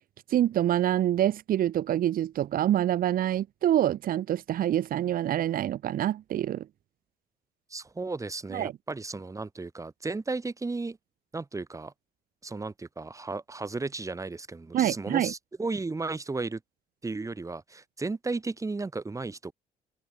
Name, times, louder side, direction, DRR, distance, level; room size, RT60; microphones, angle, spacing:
voice 1, 0.3-6.6 8.5-8.7 14.7-15.3, right 11 dB, 55° right, 1.4 m, -26 dB
voice 2, 7.7-11.0 11.3-11.9 12.4-16.6 17.0-19.5, right 3 dB, 20° right, 5.9 m, -34 dB
open air
cardioid pair, 110°, 17 cm